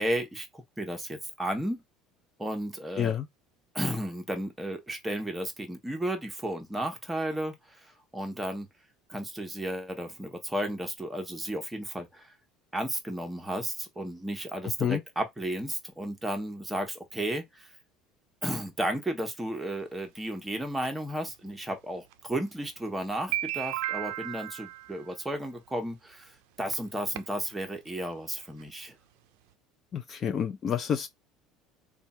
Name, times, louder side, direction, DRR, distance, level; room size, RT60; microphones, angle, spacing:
voice 1, 0.0-1.8 2.4-3.2 3.7-8.7 9.1-12.3 12.7-17.7 18.4-28.9, right 1 dB, 10° right, 1.1 m, -33 dB
sound 1, 19.7-19.8 20.9-21.0 22.1-22.2 22.8-22.9 23.1-25.1 26.2-26.3 26.7-26.8 27.2-27.5 27.9-28.0 28.1-28.2 28.6-28.7, right 15 dB, 80° right, 0.4 m, -34 dB
voice 2, 29.9-31.1, left 8 dB, 35° left, 0.5 m, -28 dB
3.2 x 2.4 x 4.2 m
cardioid pair, 125°, 0 cm